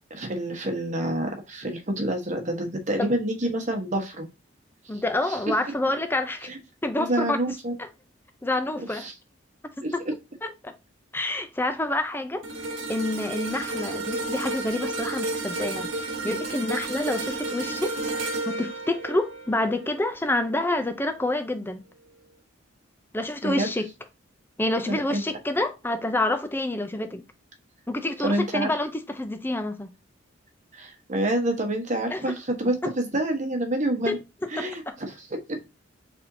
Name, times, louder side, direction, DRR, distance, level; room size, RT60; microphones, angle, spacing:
voice 1, 0.1-4.2 5.3-5.4 6.5-6.6 7.0-7.7 8.7-9.1 9.8-9.9 23.4-23.7 24.9-25.2 28.2-28.7 30.7-34.2 34.5-35.6, right 1 dB, 40° right, 1.1 m, -28 dB
voice 2, 4.9-6.5 6.8-7.9 8.4-9.1 9.8-10.0 10.4-10.7 11.1-12.5 12.9-17.9 18.5-21.8 23.1-23.9 24.6-27.2 27.9-29.9 32.1-32.4 32.8-32.9 34.1-34.2 34.6-34.9, left 1 dB, 10° left, 0.5 m, -28 dB
sound 1, 12.4-20.8 21.2-21.4, right 2 dB, 75° right, 1.2 m, -32 dB
4.3 x 3.5 x 2.7 m
head